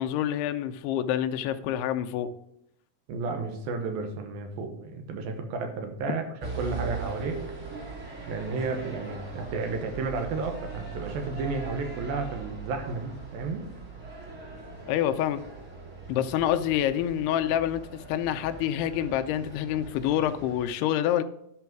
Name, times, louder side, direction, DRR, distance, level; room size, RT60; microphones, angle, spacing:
voice 1, 0.0-2.3 14.9-15.4 16.1-21.2, left 11 dB, 90° left, 9 dB, 2.7 m, -27 dB
voice 2, 3.1-6.2 6.6-7.4 8.3-13.6, right 4 dB, 70° right, 5 dB, 2.9 m, -32 dB
sound 1, 6.4-20.7, right 4 dB, 25° right, 1.9 m, -40 dB
10.5 x 6.1 x 4.6 m, 0.76 s
omnidirectional pair, 4.5 m